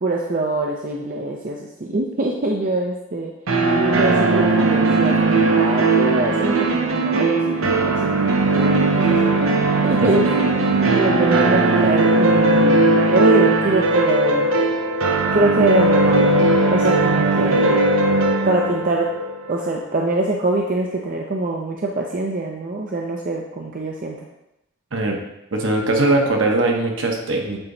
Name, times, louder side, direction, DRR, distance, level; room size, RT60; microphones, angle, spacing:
voice 1, 0.0-3.3 3.9-9.5 9.8-10.3 10.6-14.5 15.3-16.4 16.7-17.8 18.4-19.1 19.5-24.3, right 2 dB, 40° right, 0 dB, 0.5 m, -24 dB
sound 1, 3.5-20.2, right 2 dB, 80° right, 0.7 m, -18 dB
voice 2, 25.5-27.6, right 2 dB, 65° right, 1 dB, 1.1 m, -20 dB
8.9 x 3.0 x 3.9 m, 0.88 s
head